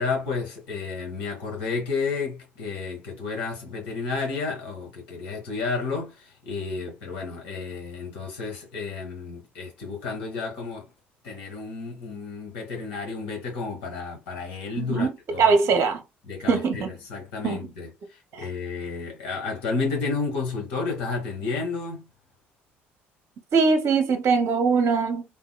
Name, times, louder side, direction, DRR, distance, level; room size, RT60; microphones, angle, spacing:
voice 1, 0.0-10.9 11.2-15.5 16.2-17.9 18.4-22.0, left 4 dB, 80° left, 1.3 m, -31 dB
voice 2, 14.8-15.1 15.4-16.0 16.5-16.9 17.4-17.7 18.3-18.5 23.5-25.2, right 5 dB, 50° right, 0.7 m, -21 dB
3.4 x 2.1 x 2.3 m
hypercardioid pair, 55°, 6 cm